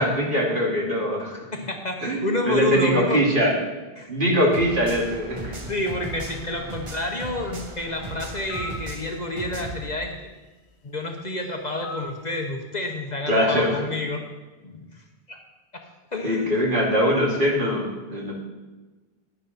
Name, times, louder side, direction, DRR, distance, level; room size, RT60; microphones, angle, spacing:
voice 1, 0.0-1.4 2.0-3.5 4.1-5.5 13.3-13.8 16.2-18.3, equal, 55° right, -3 dB, 2.7 m, -22 dB
voice 2, 1.5-3.2 4.0-4.1 5.7-10.1 10.8-14.2 14.6-15.4 16.1-16.5, left 2 dB, 45° left, 2 dB, 1.1 m, -29 dB
sound 1, 4.5-9.9, right 2 dB, 30° right, 1.0 m, -36 dB
sound 2, 8.5-8.9 11.8-12.2, left 1 dB, 85° left, 1.3 m, -36 dB
11.0 x 9.6 x 4.1 m, 1.2 s
omnidirectional pair, 1.1 m